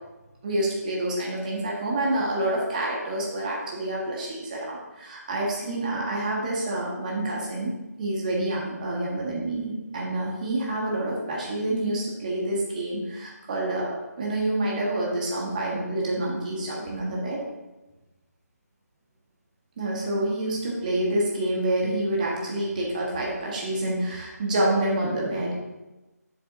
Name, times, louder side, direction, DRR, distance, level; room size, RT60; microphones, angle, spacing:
voice 1, 0.4-7.7 8.0-17.4 19.8-25.5, right 1 dB, 30° right, -3 dB, 1.3 m, -28 dB
7.1 x 6.8 x 2.6 m, 1.0 s
figure-of-eight pair, 165°, 9 cm